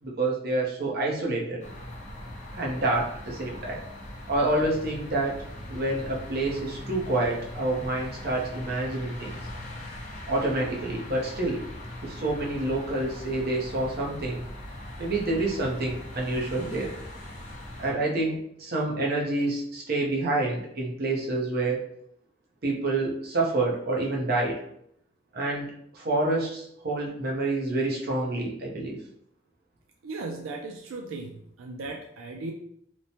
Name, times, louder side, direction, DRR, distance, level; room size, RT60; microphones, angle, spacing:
voice 1, 0.0-1.6 2.5-3.8 4.3-5.4 5.7-9.4 10.3-11.6 12.0-14.4 15.0-16.9 17.8-21.8 22.6-24.6 25.3-25.7 25.9-29.0, right 2 dB, 55° right, -2 dB, 0.6 m, -28 dB
sound 1, 1.6-17.9, left 1 dB, 40° left, 0.6 m, -40 dB
voice 2, 30.0-32.5, right 3 dB, 90° right, 1 dB, 0.3 m, -37 dB
3.0 x 2.0 x 2.7 m, 0.71 s
head